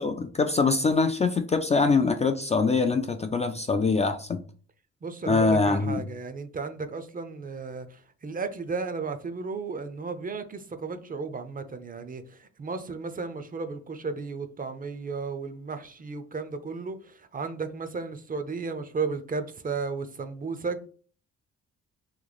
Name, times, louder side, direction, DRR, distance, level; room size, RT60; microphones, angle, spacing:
voice 1, 0.0-4.4 5.3-6.0, left 4 dB, 25° left, 0.3 m, -24 dB
voice 2, 5.0-20.9, right 4 dB, 30° right, 0.5 m, -34 dB
3.1 x 2.9 x 3.9 m
cardioid pair, 90°, 30 cm